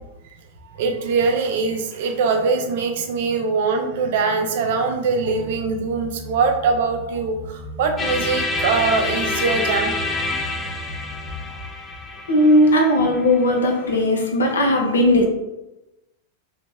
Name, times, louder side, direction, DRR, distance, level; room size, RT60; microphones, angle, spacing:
voice 1, 0.6-9.9, right 4 dB, 55° right, 4 dB, 0.5 m, -22 dB
sound 1, 5.2-11.5, equal, 35° right, 0.9 m, -38 dB
sound 2, 8.0-13.9, left 3 dB, 20° left, 0.5 m, -27 dB
voice 2, 12.3-15.2, left 1 dB, 70° left, 1 dB, 0.8 m, -17 dB
3.2 x 2.9 x 3.4 m, 0.97 s
figure-of-eight pair, 90°, 0 cm